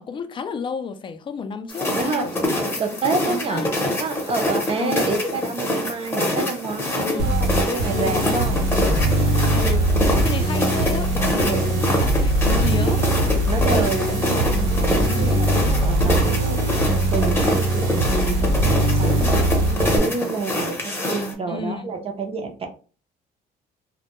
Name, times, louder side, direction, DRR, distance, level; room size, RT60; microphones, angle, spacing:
voice 1, 0.0-2.6 3.0-3.9 4.8-5.0 7.0-7.3 7.9-9.1 9.5-9.9 10.2-13.0 15.1-16.0 21.5-21.9, left 5 dB, 30° left, 0.3 m, -32 dB
sound 1, 1.7-21.3, left 1 dB, 15° left, 0.7 m, -26 dB
voice 2, 1.9-3.6 4.0-9.2 11.4-11.8 13.5-15.5 15.8-16.6 16.9-22.7, right 4 dB, 35° right, 0.5 m, -28 dB
sound 2, 7.2-20.0, right 1 dB, 80° right, 0.9 m, -21 dB
2.1 x 2.1 x 2.9 m
cardioid pair, 110°, 17 cm